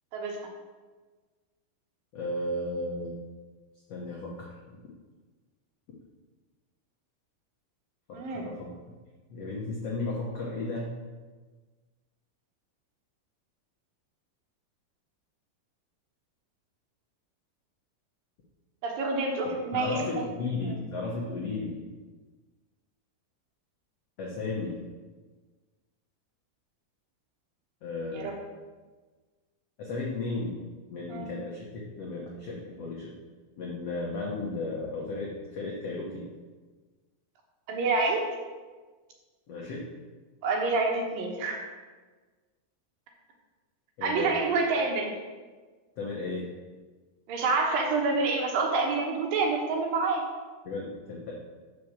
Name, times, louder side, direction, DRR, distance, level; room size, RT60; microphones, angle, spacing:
voice 1, 2.1-3.1 3.9-4.5 8.3-8.5 9.3-10.9 19.7-21.8 24.2-24.7 27.8-28.4 29.8-30.5 30.9-33.1 33.6-36.2 39.5-39.8 44.0-44.4 46.0-46.4 50.6-51.3, left 2 dB, 75° left, -3 dB, 1.4 m, -34 dB
voice 2, 8.1-8.4 18.8-20.2 20.6-20.7 28.1-28.4 31.1-31.3 37.7-38.3 40.4-41.6 44.0-45.2 47.3-50.2, right 3 dB, 70° right, 1 dB, 2.6 m, -27 dB
6.5 x 5.9 x 7.2 m, 1.4 s
omnidirectional pair, 4.5 m